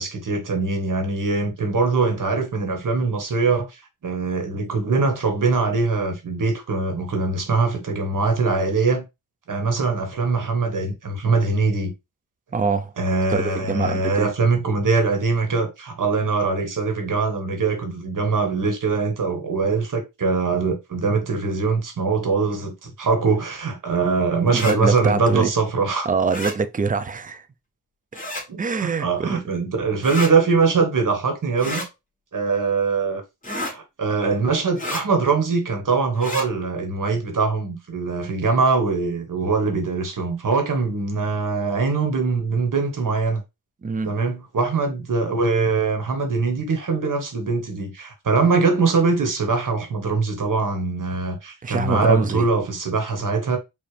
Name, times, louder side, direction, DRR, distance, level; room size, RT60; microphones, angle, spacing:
voice 1, 0.0-9.0 9.5-11.9 13.0-26.1 28.5-31.8 32.3-33.2 33.5-43.4 44.0-53.6, right 4 dB, 55° right, 1.6 m, -22 dB
voice 2, 12.5-12.9 13.3-14.3 24.5-25.5 26.1-27.5 28.6-29.3 43.8-44.1 51.6-52.5, right 5 dB, 20° right, 0.5 m, -24 dB
sound 1, 24.5-24.8 26.3-26.6 28.1-28.4 30.0-30.3 31.6-31.9 33.4-33.7 34.8-35.0 36.1-36.5, left 1 dB, 20° left, 2.1 m, -30 dB
4.9 x 2.8 x 3.3 m
cardioid pair, 75°, 37 cm